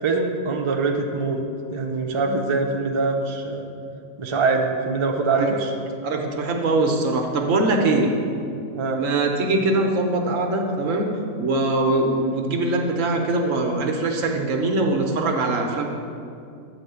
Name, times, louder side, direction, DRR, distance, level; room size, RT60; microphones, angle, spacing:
voice 1, 0.0-1.4 1.7-3.7 4.2-5.7 8.0-8.1 8.7-9.0, right 3 dB, 45° right, 2 dB, 0.4 m, -23 dB
voice 2, 6.0-8.1 9.0-11.1 11.4-15.8, right 2 dB, 65° right, 2 dB, 1.2 m, -22 dB
9.3 x 3.6 x 6.8 m, 2.4 s
omnidirectional pair, 1.5 m